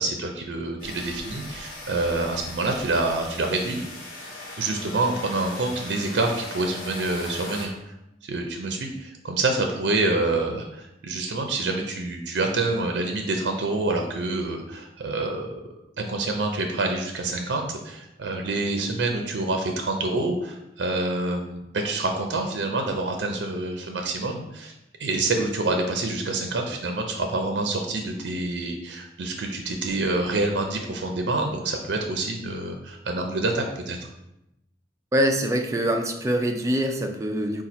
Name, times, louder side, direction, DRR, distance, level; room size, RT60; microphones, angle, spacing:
voice 1, 0.0-3.8 4.6-7.9 8.2-15.6 16.0-24.7 25.0-34.1, right 2 dB, 80° right, 3 dB, 0.5 m, -27 dB
sound 1, 0.8-7.7, left 2 dB, 50° left, 1.3 m, -39 dB
voice 2, 35.1-37.6, equal, 20° right, 4 dB, 0.4 m, -24 dB
4.2 x 2.4 x 4.1 m, 0.86 s
head